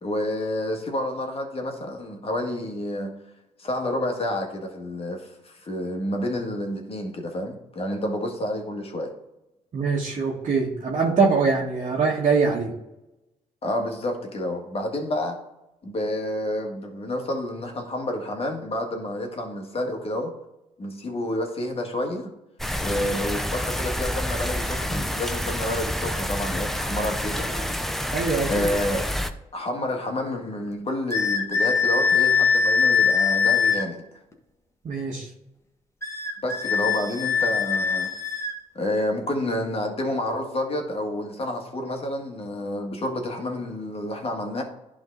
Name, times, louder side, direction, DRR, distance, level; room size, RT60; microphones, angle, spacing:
voice 1, 0.0-3.2 3.6-9.1 13.6-15.4 15.8-20.3 20.8-22.3 22.8-27.7 28.5-29.0 29.5-34.0 36.4-38.1 38.7-44.6, left 1 dB, 40° left, 3 dB, 1.8 m, -29 dB
voice 2, 9.7-12.7 28.1-28.7 34.8-35.3, right 4 dB, 55° right, -4 dB, 1.6 m, -23 dB
sound 1, 22.6-29.3, equal, ahead, 0.7 m, -28 dB
sound 2, 31.1-33.9 36.0-38.6, left 6 dB, 20° left, 1.6 m, -22 dB
10.5 x 3.7 x 3.9 m, 0.93 s
supercardioid pair, 55°, 15 cm